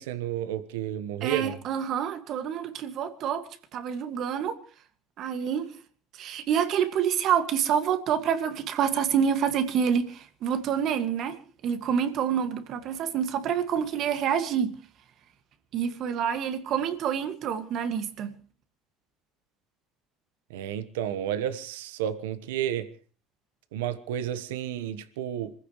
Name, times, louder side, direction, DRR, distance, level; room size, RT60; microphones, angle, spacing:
voice 1, 0.0-1.6 20.5-22.9 23.7-25.5, right 10 dB, 80° right, 1.2 m, -31 dB
voice 2, 1.2-3.4 3.7-4.6 5.2-5.7 6.2-14.8 15.7-18.3, right 8 dB, 55° right, 2.0 m, -27 dB
26.5 x 15.5 x 3.2 m
hypercardioid pair, 75°, 0 cm